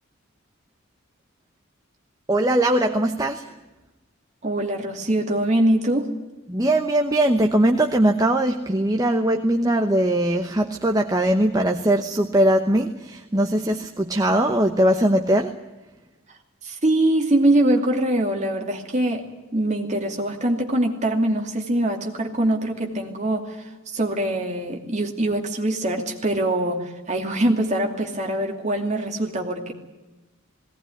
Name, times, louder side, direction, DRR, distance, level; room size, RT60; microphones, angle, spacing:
voice 1, 2.3-3.5 6.5-15.5, right 1 dB, 15° right, 4 dB, 0.9 m, -20 dB
voice 2, 4.4-6.1 16.6-29.7, right 1 dB, 35° right, 2 dB, 2.7 m, -23 dB
19.0 x 18.0 x 10.0 m, 1.1 s
head